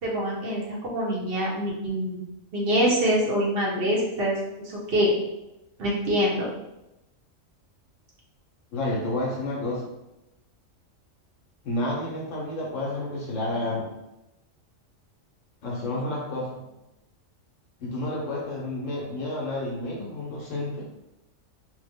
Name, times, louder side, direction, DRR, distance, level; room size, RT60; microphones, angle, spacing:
voice 1, 0.0-2.2 2.5-4.4 4.6-5.1 5.8-6.5, equal, 50° right, -4 dB, 0.8 m, -25 dB
voice 2, 8.7-9.9 11.6-13.9 15.6-16.7 17.8-20.9, left 1 dB, 70° left, -2 dB, 1.0 m, -30 dB
3.2 x 2.0 x 3.5 m, 0.92 s
omnidirectional pair, 1.4 m